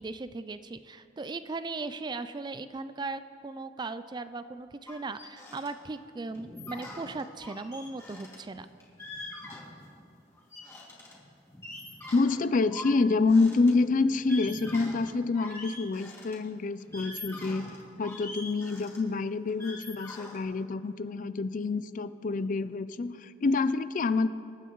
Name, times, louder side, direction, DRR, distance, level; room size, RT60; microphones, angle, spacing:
voice 1, 0.0-8.7, right 3 dB, 25° right, 12 dB, 0.4 m, -38 dB
sound 1, 4.9-5.7 5.9-6.0 6.3-10.1 10.3-16.4 16.8-20.4, left 2 dB, 15° left, 2.3 m, -43 dB
voice 2, 12.1-24.3, left 3 dB, 45° left, 13 dB, 0.4 m, -27 dB
26.5 x 9.1 x 3.1 m, 2.4 s
head